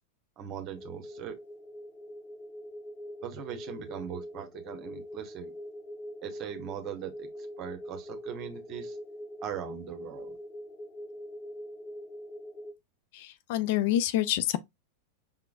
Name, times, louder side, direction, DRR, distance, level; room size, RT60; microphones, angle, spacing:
voice 1, 0.4-1.3 3.2-5.5 6.2-7.3 7.6-9.0 9.4-10.4, right 9 dB, 35° right, 1.2 m, -40 dB
sound 1, 0.7-12.7, equal, 25° left, 0.8 m, -43 dB
voice 2, 13.5-14.6, left 13 dB, 50° left, 0.4 m, -26 dB
5.5 x 3.7 x 2.3 m
figure-of-eight pair, 90°, 0 cm